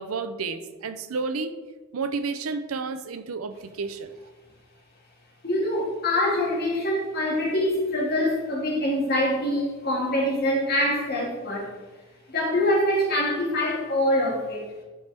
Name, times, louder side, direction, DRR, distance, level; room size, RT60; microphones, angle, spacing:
voice 1, 0.0-1.5 1.9-4.1, right 4 dB, 85° right, 11 dB, 0.6 m, -31 dB
voice 2, 5.4-11.7 12.3-14.7, left 1 dB, 50° left, -3 dB, 2.0 m, -24 dB
10.0 x 4.5 x 3.4 m, 1.2 s
head